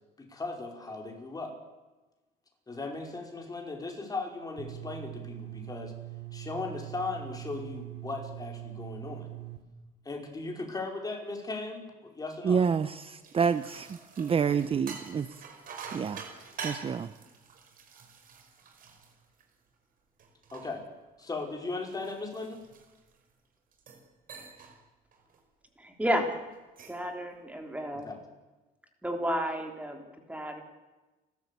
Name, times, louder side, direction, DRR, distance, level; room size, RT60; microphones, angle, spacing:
voice 1, 0.2-1.5 2.7-5.9 6.3-9.3 10.0-12.6 20.5-20.8 21.2-22.6 28.0-28.2, left 3 dB, 20° left, 5.0 m, -37 dB
sound 1, 4.6-9.6, right 19 dB, 75° right, 3.0 m, -42 dB
voice 2, 12.4-15.3 15.9-16.2 16.6-17.1, right 6 dB, 35° right, 0.8 m, -28 dB
sound 2, 12.9-19.7 20.2-23.2 23.7-24.0 24.3-24.8 25.1-25.4 26.5-27.1, right 5 dB, 55° right, 5.1 m, -46 dB
voice 3, 25.8-26.3 26.9-28.1 29.0-30.6, equal, 10° right, 3.7 m, -32 dB
30.0 x 13.0 x 8.4 m
cardioid pair, 110°, 17 cm